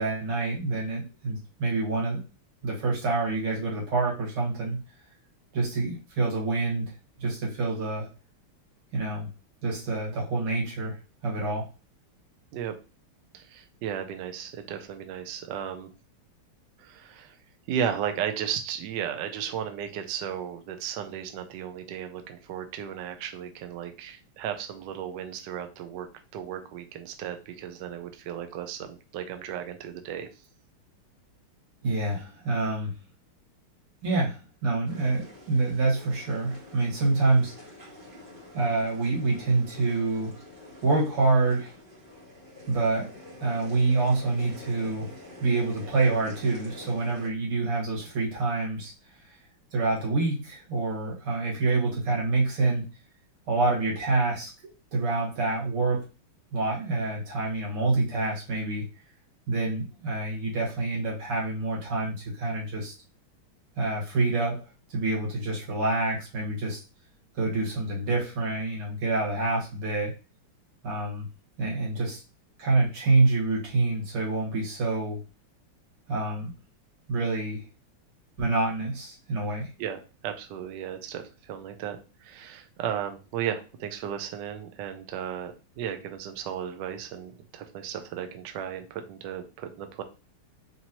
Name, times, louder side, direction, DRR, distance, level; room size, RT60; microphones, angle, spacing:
voice 1, 0.0-2.2 2.6-4.8 5.5-6.9 7.2-8.1 8.9-9.3 9.6-11.0 11.2-11.7 31.8-32.9 34.0-37.5 38.5-40.3 40.8-41.7 42.7-43.1 43.4-45.1 45.4-48.9 49.2-49.3 49.7-52.9 53.5-54.5 54.9-56.0 56.5-58.9 59.5-62.9 63.8-64.6 64.9-66.8 67.3-70.1 70.8-71.3 71.6-72.2 72.6-75.2 76.1-76.5 77.1-77.6 78.4-79.7, right 3 dB, 90° right, -4 dB, 2.5 m, -27 dB
voice 2, 13.3-15.9 16.8-17.4 17.7-26.1 26.3-30.3 79.8-90.0, right 9 dB, 70° right, 7 dB, 1.1 m, -35 dB
sound 1, 34.8-47.3, left 1 dB, 30° right, 1.2 m, -47 dB
4.4 x 2.7 x 2.8 m, 0.32 s
omnidirectional pair, 2.4 m